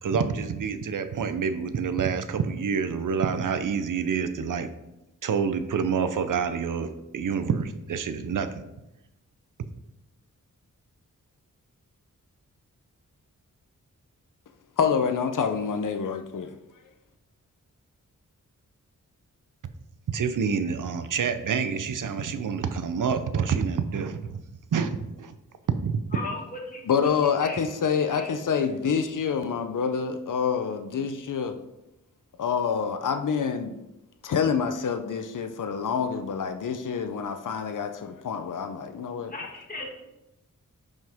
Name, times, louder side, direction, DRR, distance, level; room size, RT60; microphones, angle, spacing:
voice 1, 0.0-4.7 5.2-8.5 20.1-24.4 24.7-25.3, right 6 dB, 75° right, 10 dB, 0.6 m, -27 dB
voice 2, 14.8-16.6 26.9-31.6 32.4-33.8 34.2-39.3, left 6 dB, 70° left, 7 dB, 0.6 m, -27 dB
voice 3, 26.1-27.6 28.1-28.3 39.3-40.0, left 2 dB, 25° left, -1 dB, 1.8 m, -38 dB
9.1 x 5.4 x 3.6 m, 0.91 s
wide cardioid pair, 140°, 32 cm